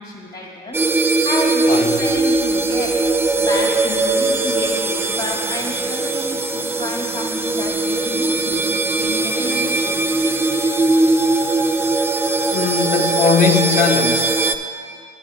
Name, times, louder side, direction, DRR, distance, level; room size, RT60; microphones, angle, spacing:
voice 1, 0.0-2.9 3.4-8.7 9.0-10.0 14.6-15.1, left 1 dB, 55° left, 1.8 m, -30 dB
sound 1, 0.7-14.5, right 2 dB, 10° right, 0.4 m, -19 dB
voice 2, 1.7-2.1 12.5-14.5, left 7 dB, 40° left, 0.8 m, -20 dB
18.5 x 7.1 x 2.2 m
cardioid pair, 90°, 20 cm